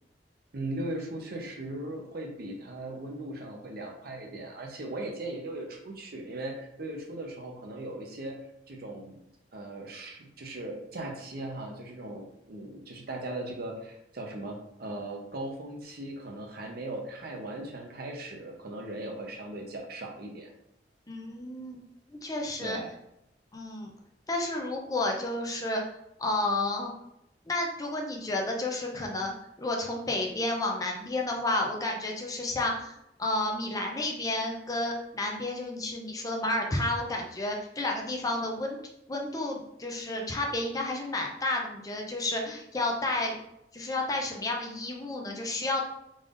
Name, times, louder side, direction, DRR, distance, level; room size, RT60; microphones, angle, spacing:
voice 1, 0.5-8.4 8.7-9.2 9.5-20.5 22.6-22.9, right 1 dB, 60° right, 2 dB, 0.7 m, -38 dB
voice 2, 21.1-21.8 22.1-22.8 23.5-23.9 24.3-25.8 26.2-26.9 27.5-29.3 29.6-38.8 39.1-43.4 43.7-45.8, left 2 dB, 20° left, 0 dB, 0.5 m, -31 dB
3.8 x 3.4 x 2.5 m, 0.81 s
head